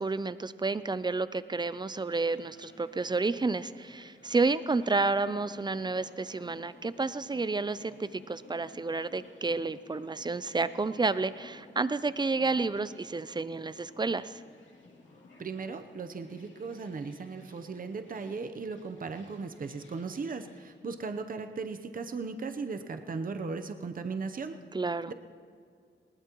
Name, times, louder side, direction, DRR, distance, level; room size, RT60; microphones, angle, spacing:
voice 1, 0.0-14.3 24.7-25.1, right 3 dB, 25° right, 14 dB, 0.4 m, -30 dB
sound 1, 1.7-20.7, left 2 dB, 85° left, 2.5 m, -56 dB
voice 2, 15.4-24.6 24.9-25.1, right 4 dB, 50° right, 8 dB, 0.8 m, -37 dB
20.0 x 19.0 x 3.0 m, 2.2 s
wide cardioid pair, 105°, 19 cm